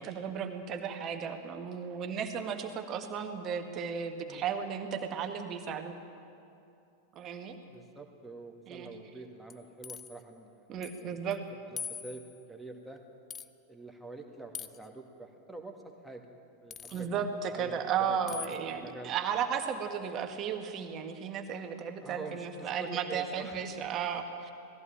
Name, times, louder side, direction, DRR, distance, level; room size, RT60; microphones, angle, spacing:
voice 1, 0.0-6.0 7.2-7.6 8.7-8.9 10.7-11.4 16.9-24.5, right 7 dB, 30° right, 6 dB, 1.8 m, -34 dB
voice 2, 7.7-11.4 11.7-12.2 12.5-13.0 13.7-15.7 16.0-16.2 16.6-17.8 18.1-18.4 18.8-19.1 22.0-23.7, right 3 dB, ahead, 1 dB, 2.2 m, -46 dB
sound 1, 9.5-10.2 10.8-11.0 11.3-11.4 11.8-12.4 13.3-13.5 14.5-14.9 16.7-17.1 18.3-18.6, left 7 dB, 25° left, 0.6 m, -42 dB
19.5 x 15.0 x 9.0 m, 2.7 s
figure-of-eight pair, 90°, 0 cm